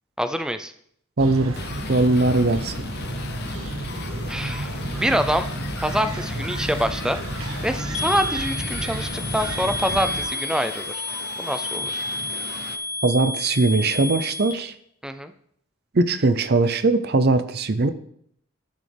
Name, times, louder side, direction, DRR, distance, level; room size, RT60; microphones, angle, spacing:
voice 1, 0.2-0.7 4.3-5.5 5.8-10.9 11.4-11.9 15.0-15.3, equal, 5° right, 10 dB, 0.5 m, -26 dB
voice 2, 1.2-1.6 1.9-2.7 13.0-14.7 15.9-17.9, right 3 dB, 50° right, 12 dB, 0.6 m, -20 dB
sound 1, 1.2-10.2, right 1 dB, 75° right, 1.4 m, -31 dB
sound 2, 1.5-12.8, left 5 dB, 50° left, 0.7 m, -38 dB
sound 3, 7.9-14.5, left 2 dB, 80° left, 1.4 m, -31 dB
12.5 x 6.3 x 3.4 m, 0.67 s
head